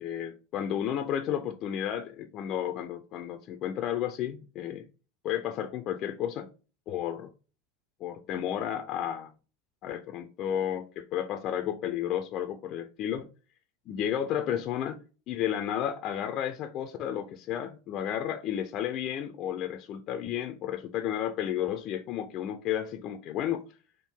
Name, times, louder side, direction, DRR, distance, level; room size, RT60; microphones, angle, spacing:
voice 1, 0.0-4.9 5.2-6.5 6.9-7.3 8.0-9.3 9.8-13.3 13.9-15.0 15.3-23.6, left 10 dB, 45° left, 0.5 m, -32 dB
4.4 x 2.6 x 3.6 m
supercardioid pair, 115°, 0 cm